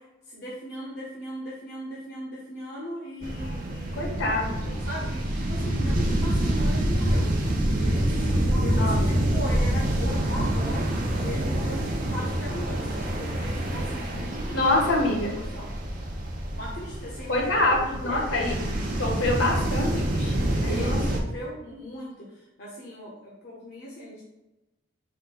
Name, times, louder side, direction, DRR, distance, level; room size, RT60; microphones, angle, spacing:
voice 1, 0.3-4.1 4.9-7.3 7.8-10.9 11.2-14.6 15.3-15.7 16.5-18.6 20.6-24.2, equal, 55° left, -5 dB, 0.8 m, -38 dB
sound 1, 3.2-21.2, right 1 dB, 40° right, 0.6 m, -27 dB
voice 2, 3.9-4.8 8.7-9.0 14.5-15.3 17.3-18.5 19.0-21.0, left 2 dB, 70° left, 0 dB, 1.1 m, -26 dB
4.5 x 2.2 x 3.8 m, 0.98 s
head